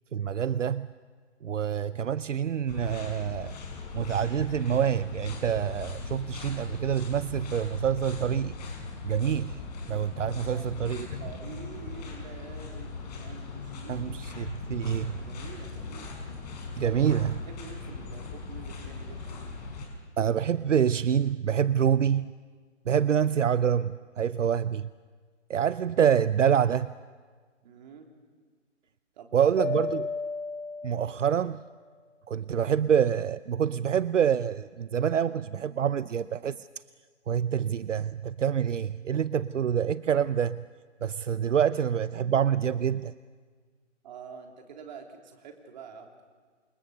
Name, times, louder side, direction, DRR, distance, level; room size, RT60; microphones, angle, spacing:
voice 1, 0.1-0.9 1.4-3.6 3.9-8.5 9.0-9.6 9.9-11.1 13.9-15.3 16.8-17.3 20.2-22.3 22.9-24.9 25.5-26.9 29.3-30.1 30.8-31.6 32.3-36.7 37.3-40.6 41.0-43.1, right 8 dB, 70° right, 16 dB, 0.7 m, -26 dB
sound 1, 2.7-19.9, left 4 dB, 30° left, 5.7 m, -39 dB
voice 2, 10.3-10.7 11.2-14.2 15.2-16.1 16.8-17.1 17.4-19.5 27.6-28.1 29.1-29.5 29.8-29.9 44.0-46.1, right 6 dB, 35° right, 3 dB, 3.4 m, -46 dB
Mallet percussion, 29.6-31.6, left 4 dB, 80° left, 2.4 m, -34 dB
28.5 x 26.5 x 6.8 m, 1.5 s
hypercardioid pair, 150°, 38 cm